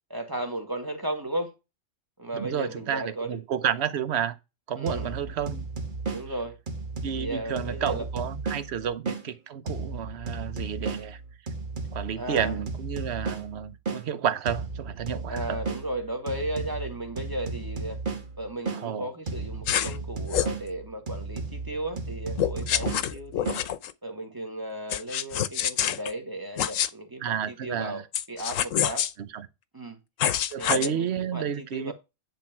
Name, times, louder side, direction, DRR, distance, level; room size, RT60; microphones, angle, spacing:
voice 1, 0.1-1.5 2.2-3.4 4.8-5.1 6.1-6.6 7.1-8.1 8.8-8.9 12.2-12.6 15.3-18.0 18.4-23.5 24.0-28.0 28.3-29.1 29.7-30.0 30.6-31.9, right 1 dB, 15° right, 1.9 m, -35 dB
voice 2, 2.3-4.4 4.7-5.7 7.0-11.2 11.9-15.6 18.8-19.1 27.2-28.0 29.3-29.5 30.5-31.9, right 8 dB, 60° right, 1.1 m, -31 dB
sound 1, 4.9-9.2 9.7-14.0 14.5-18.8 19.3-23.6, right 4 dB, 40° right, 1.6 m, -35 dB
sound 2, 19.7-20.0 20.3-20.6 22.4-23.9 24.9-26.1 26.6-26.9 28.1-29.1 30.2-30.9, left 10 dB, 85° left, 1.1 m, -26 dB
10.5 x 3.9 x 5.9 m
omnidirectional pair, 1.3 m